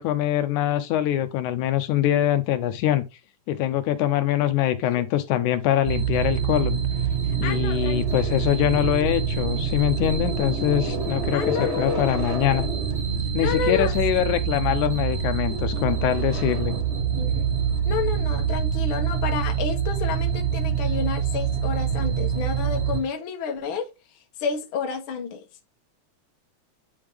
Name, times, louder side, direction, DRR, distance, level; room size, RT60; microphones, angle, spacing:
voice 1, 0.0-3.0 3.5-6.8 7.4-12.7 13.3-16.7, left 12 dB, 80° left, 2.1 m, -23 dB
sound 1, 5.8-23.0, right 7 dB, 75° right, 0.6 m, -26 dB
voice 2, 7.4-8.0 8.3-8.4 11.3-12.0 13.4-14.0 17.1-17.5 17.9-23.9 24.4-25.4, left 6 dB, 55° left, 1.5 m, -30 dB
9.5 x 3.5 x 3.4 m
omnidirectional pair, 3.6 m